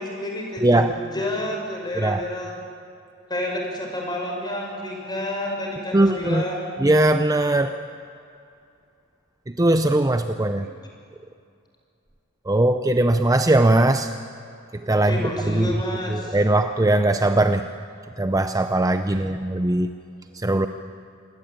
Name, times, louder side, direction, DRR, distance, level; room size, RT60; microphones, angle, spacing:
voice 1, 0.0-2.6 3.3-6.8 10.6-10.7 14.9-16.4, left 1 dB, 20° left, 1 dB, 5.9 m, -29 dB
voice 2, 0.6-1.0 2.0-2.2 5.9-6.4 6.8-7.8 9.5-10.7 12.5-14.1 14.7-15.8 16.1-17.7 18.2-19.9 20.3-20.7, right 1 dB, 15° right, 8 dB, 0.7 m, -20 dB
26.5 x 20.5 x 9.0 m, 2.6 s
head